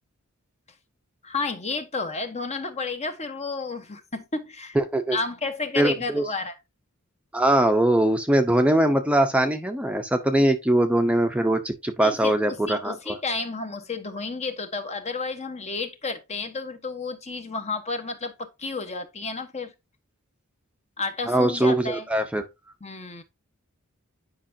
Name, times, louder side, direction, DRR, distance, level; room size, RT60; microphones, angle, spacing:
voice 1, 1.2-4.8 5.1-6.5 12.0-19.7 21.0-22.0 22.8-23.2, left 4 dB, 30° left, 1.1 m, -31 dB
voice 2, 4.7-5.2 5.8-6.2 7.3-13.2 21.3-22.4, right 1 dB, 5° right, 0.8 m, -22 dB
10.0 x 5.5 x 2.7 m
head